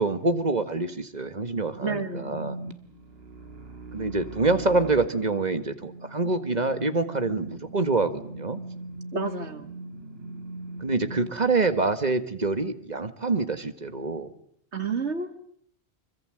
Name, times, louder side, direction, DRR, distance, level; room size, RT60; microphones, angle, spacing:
voice 1, 0.0-2.6 3.9-8.6 10.8-14.3, right 3 dB, 40° right, 10 dB, 1.6 m, -26 dB
sound 1, 1.6-11.3, right 2 dB, 60° right, 1.9 m, -40 dB
voice 2, 1.8-2.4 9.1-9.7 14.7-15.4, right 4 dB, 80° right, 7 dB, 2.3 m, -30 dB
26.0 x 24.5 x 7.8 m, 0.65 s
omnidirectional pair, 1.2 m